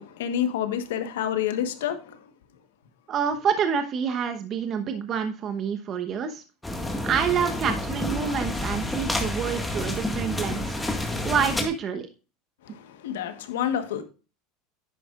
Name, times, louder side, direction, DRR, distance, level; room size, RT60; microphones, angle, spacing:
voice 1, 0.0-2.2 12.6-14.0, left 9 dB, 90° left, 1.2 m, -28 dB
voice 2, 3.1-6.4 7.0-10.8 11.2-12.1, right 7 dB, 40° right, 1.0 m, -27 dB
sound 1, 6.6-11.6, left 1 dB, 10° left, 1.8 m, -29 dB
10.0 x 9.1 x 2.5 m
supercardioid pair, 115°, 0 cm